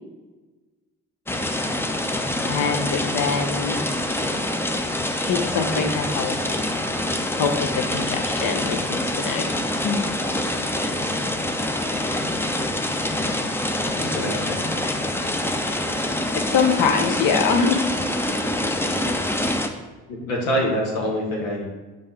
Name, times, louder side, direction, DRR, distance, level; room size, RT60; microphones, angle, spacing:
sound 1, 1.3-19.7, left 1 dB, 5° left, 0.5 m, -25 dB
voice 1, 2.4-3.8 5.2-6.4 7.3-10.1 16.3-17.8, left 5 dB, 50° left, 5 dB, 0.9 m, -24 dB
voice 2, 14.0-14.7 20.1-21.6, equal, 80° left, -2 dB, 1.3 m, -26 dB
5.5 x 5.3 x 3.2 m, 1.2 s
figure-of-eight pair, 45°, 41 cm